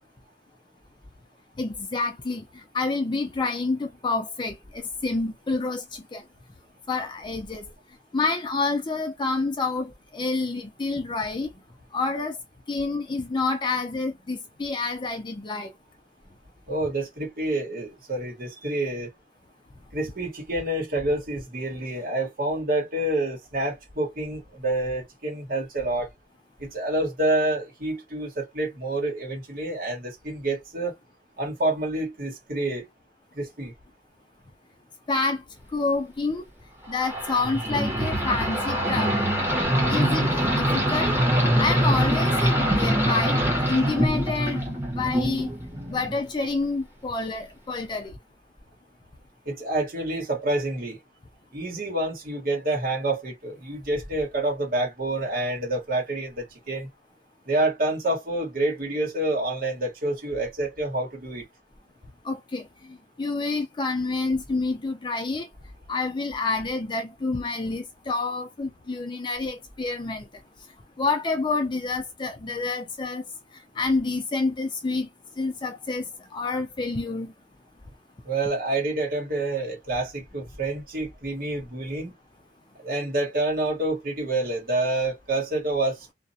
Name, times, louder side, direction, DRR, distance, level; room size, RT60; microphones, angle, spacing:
voice 1, 1.6-6.2 6.9-7.7 8.1-11.5 11.9-12.4 12.7-15.7 35.1-35.4 35.7-36.4 36.9-39.2 39.9-41.2 41.6-43.4 43.7-45.5 45.9-48.1 62.2-65.5 65.9-70.2 71.0-73.2 73.8-75.1 75.4-76.1 76.3-77.3, left 3 dB, 25° left, 0.4 m, -28 dB
voice 2, 16.7-19.1 19.9-26.1 26.6-30.9 31.4-32.9 33.3-33.7 49.4-51.0 51.5-56.9 57.5-61.4 78.2-82.1 82.8-86.1, right 2 dB, 55° right, 1.2 m, -28 dB
sound 1, 36.9-46.3, equal, 15° right, 0.9 m, -24 dB
2.4 x 2.0 x 2.6 m
head